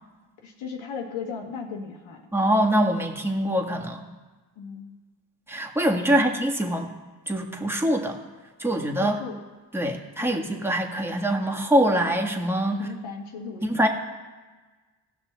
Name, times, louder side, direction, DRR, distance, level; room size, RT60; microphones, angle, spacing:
voice 1, 0.4-2.2 4.6-5.0 6.1-6.3 9.0-9.4 10.2-10.4 12.8-13.9, left 5 dB, 80° left, 2 dB, 1.6 m, -36 dB
voice 2, 2.3-4.1 5.5-6.9 7.3-8.2 8.6-9.2 9.7-12.8 13.6-13.9, right 1 dB, 5° right, 0 dB, 1.7 m, -24 dB
16.5 x 6.0 x 4.1 m, 1.3 s
supercardioid pair, 50°, 48 cm